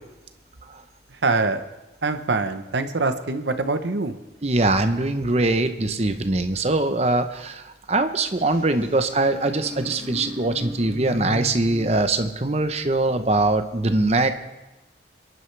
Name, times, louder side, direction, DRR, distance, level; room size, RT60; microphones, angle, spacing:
voice 1, 1.1-1.6 2.0-4.2, right 3 dB, 80° right, 9 dB, 0.9 m, -24 dB
voice 2, 4.4-7.6 7.9-14.3, right 2 dB, 35° right, 8 dB, 0.8 m, -22 dB
sound 1, 8.4-12.0, left 1 dB, 10° left, 5.7 m, -36 dB
27.0 x 11.0 x 3.3 m, 1.0 s
head